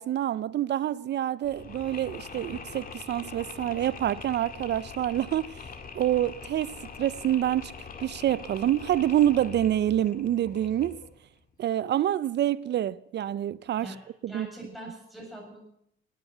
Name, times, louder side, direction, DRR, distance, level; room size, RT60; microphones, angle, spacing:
voice 1, 0.0-5.7 5.9-7.7 8.0-11.0 11.6-13.9 14.2-14.5, right 12 dB, 60° right, 0.5 m, -27 dB
Mechanisms, 1.4-11.2, left 5 dB, 45° left, 2.1 m, -43 dB
voice 2, 14.3-15.6, right 1 dB, ahead, 7.7 m, -42 dB
18.0 x 9.8 x 8.0 m
cardioid pair, 90°, 20 cm